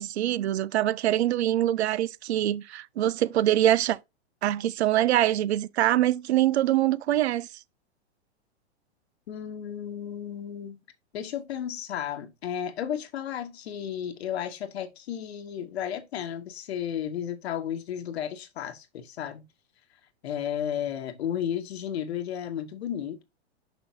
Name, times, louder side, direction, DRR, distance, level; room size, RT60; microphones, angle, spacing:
voice 1, 0.0-4.0 4.4-7.5, right 13 dB, 70° right, 0.6 m, -24 dB
voice 2, 9.3-10.8 11.1-19.4 20.2-23.2, left 9 dB, 70° left, 1.2 m, -33 dB
6.2 x 6.0 x 2.8 m
hypercardioid pair, 115°, 33 cm